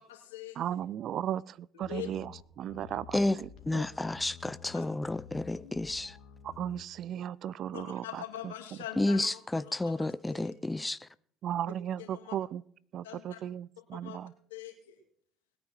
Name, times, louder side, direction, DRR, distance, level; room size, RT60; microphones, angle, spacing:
voice 1, 0.0-0.6 1.9-2.1 3.8-3.9 4.7-4.8 7.7-10.5 11.5-11.7 12.0-12.4 13.0-13.4 13.9-14.2 14.5-15.0, left 12 dB, 85° left, 2.5 m, -44 dB
voice 2, 0.6-2.3 2.6-3.8 6.4-8.5 11.4-12.6 12.9-14.3, right 10 dB, 55° right, 0.4 m, -36 dB
sound 1, 1.8-6.9, left 9 dB, 55° left, 2.1 m, -51 dB
voice 3, 3.1-6.2 9.0-11.1, left 2 dB, 15° left, 0.5 m, -31 dB
20.0 x 9.1 x 4.5 m
hypercardioid pair, 65°, 0 cm